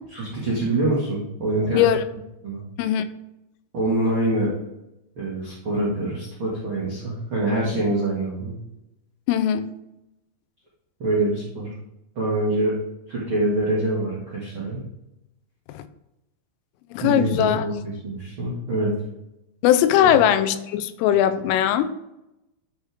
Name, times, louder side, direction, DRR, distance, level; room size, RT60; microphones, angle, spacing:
voice 1, 0.1-1.8 2.4-2.6 3.7-4.5 5.2-8.5 11.0-11.7 12.1-12.7 13.1-14.8 17.0-18.9 20.0-20.2, right 2 dB, 65° right, -7 dB, 1.2 m, -25 dB
voice 2, 1.7-2.0 2.8-3.1 9.3-9.7 15.7-15.9 16.9-17.7 19.6-21.9, left 10 dB, 85° left, 12 dB, 3.1 m, -20 dB
11.0 x 4.8 x 3.5 m, 0.88 s
omnidirectional pair, 5.7 m